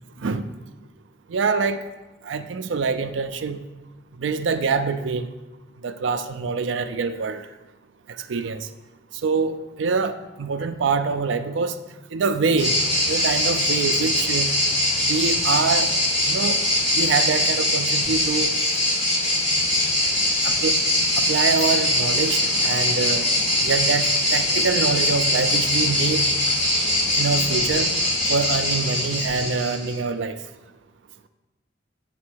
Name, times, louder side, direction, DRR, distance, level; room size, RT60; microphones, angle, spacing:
voice 1, 1.3-1.8 2.2-3.6 4.2-5.3 5.8-7.5 8.3-8.7 9.2-11.8 12.1-12.8 13.1-14.5 15.0-15.9 16.3-16.6 16.9-18.6 20.4-20.9 21.2-23.3 23.6-26.3 27.2-27.9 28.3-30.4, right 4 dB, 70° right, 8 dB, 0.4 m, -25 dB
sound 1, 12.6-29.9, left 1 dB, 75° left, 2.3 m, -22 dB
8.4 x 3.7 x 6.3 m, 1.1 s
head